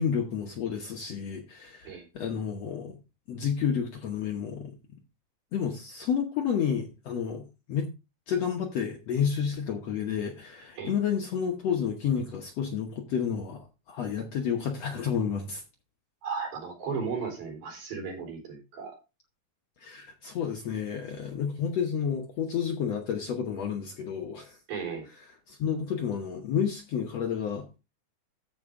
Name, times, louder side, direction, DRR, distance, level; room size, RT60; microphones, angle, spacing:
voice 1, 0.0-3.0 3.3-4.7 5.5-7.9 8.3-15.6 19.8-24.6 25.5-27.8, left 7 dB, 65° left, 1.7 m, -30 dB
voice 2, 16.2-18.9 24.7-25.1, right 5 dB, 75° right, 5.6 m, -35 dB
14.0 x 5.3 x 3.6 m
omnidirectional pair, 4.3 m